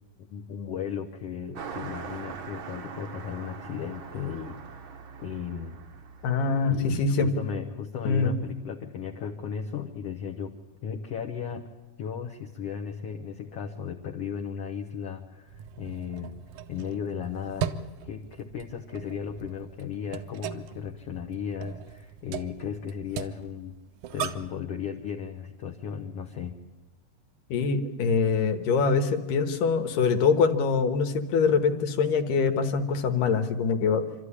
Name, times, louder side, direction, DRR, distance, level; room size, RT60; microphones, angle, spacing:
voice 1, 0.3-4.8 5.2-5.8 6.7-10.5 10.8-11.6 12.0-16.3 16.7-17.7 18.0-23.8 24.1-26.6, left 7 dB, 65° left, 2 dB, 1.7 m, -35 dB
Car passing by, 1.5-7.4, right 6 dB, 55° right, 1.5 m, -42 dB
voice 2, 6.2-7.3 8.1-8.3 27.5-34.0, left 5 dB, 80° left, 7 dB, 2.9 m, -24 dB
sound 1, 15.5-24.6, right 8 dB, 70° right, 2.1 m, -39 dB
26.5 x 13.0 x 9.9 m, 1.1 s
omnidirectional pair, 3.9 m